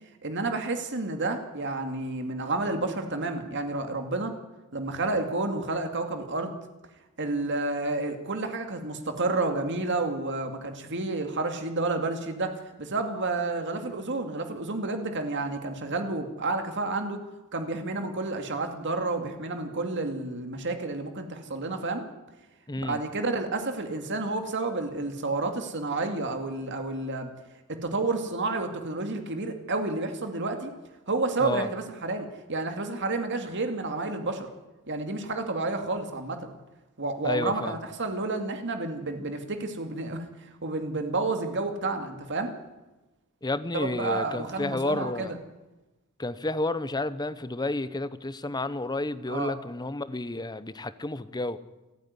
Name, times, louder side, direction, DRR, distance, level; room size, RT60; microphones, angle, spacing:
voice 1, 0.2-4.3 4.7-6.6 7.2-17.2 17.5-22.1 22.8-27.3 27.7-30.7 31.1-34.5 34.9-36.5 37.0-40.3 40.6-42.5 43.7-45.4 49.3-49.5, right 3 dB, 55° right, 5 dB, 2.3 m, -30 dB
voice 2, 22.7-23.0 31.4-31.7 37.2-37.8 43.4-45.3 46.2-51.6, left 2 dB, 20° left, 14 dB, 0.8 m, -31 dB
28.5 x 9.6 x 9.6 m, 1.1 s
head